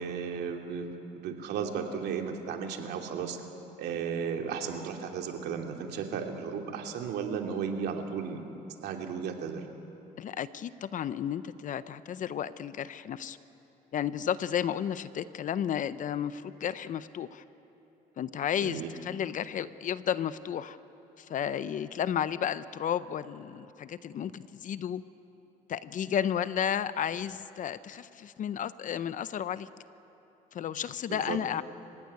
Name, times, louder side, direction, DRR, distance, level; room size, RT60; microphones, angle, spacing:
voice 1, 0.0-3.4 3.8-8.4 8.8-9.6 18.6-18.9 31.1-31.4, right 6 dB, 75° right, 3 dB, 2.6 m, -34 dB
voice 2, 10.2-13.4 13.9-17.4 18.2-20.8 21.2-25.0 25.7-29.7 30.5-31.6, left 9 dB, 50° left, 14 dB, 0.7 m, -32 dB
26.5 x 16.0 x 9.7 m, 3.0 s
cardioid pair, 110°, 17 cm